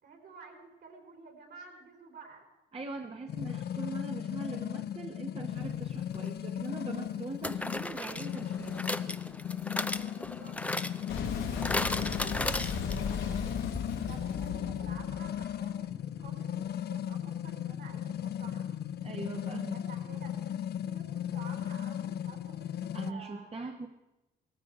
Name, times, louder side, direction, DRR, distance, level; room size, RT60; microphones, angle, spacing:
voice 1, 0.0-2.4 9.8-10.6 11.8-18.8 19.5-20.5 20.8-23.5, right 5 dB, 60° right, 3 dB, 4.2 m, -52 dB
voice 2, 2.7-8.9 19.0-19.9 22.9-23.9, right 3 dB, 30° right, 3 dB, 1.2 m, -41 dB
sound 1, 3.3-23.1, left 10 dB, 55° left, 0.6 m, -36 dB
sound 2, 6.1-6.3 7.4-13.2 13.5-13.6 13.8-13.9, left 1 dB, 5° left, 0.6 m, -36 dB
Boom, 11.1-16.3, left 5 dB, 90° left, 2.4 m, -37 dB
17.5 x 14.5 x 4.9 m, 0.96 s
cardioid pair, 90°, 20 cm